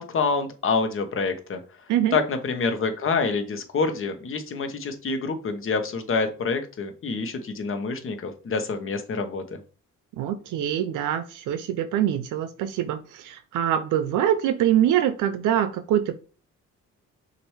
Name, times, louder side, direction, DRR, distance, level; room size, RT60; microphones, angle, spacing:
voice 1, 0.0-1.6 2.1-9.6, left 4 dB, 45° left, 7 dB, 0.9 m, -27 dB
voice 2, 10.2-16.1, right 11 dB, 85° right, 9 dB, 0.5 m, -24 dB
6.1 x 2.6 x 3.1 m, 0.37 s
cardioid pair, 90°, 30 cm